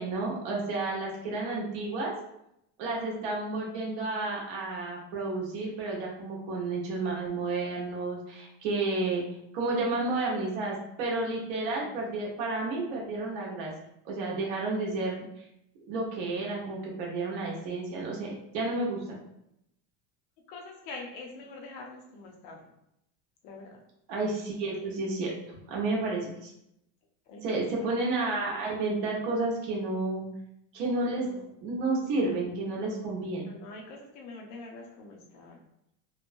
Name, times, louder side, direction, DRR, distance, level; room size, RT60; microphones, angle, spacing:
voice 1, 0.0-2.1 2.8-9.2 9.5-13.7 14.0-15.3 15.9-19.2 24.1-26.5 27.4-30.2 30.7-31.3 31.6-33.5, right 2 dB, 60° right, -3 dB, 0.9 m, -31 dB
voice 2, 20.5-22.6 23.4-23.8 27.3-27.6 31.1-31.4 33.5-35.6, left 3 dB, 45° left, 0 dB, 0.6 m, -45 dB
3.0 x 2.1 x 2.5 m, 0.79 s
cardioid pair, 175°, 41 cm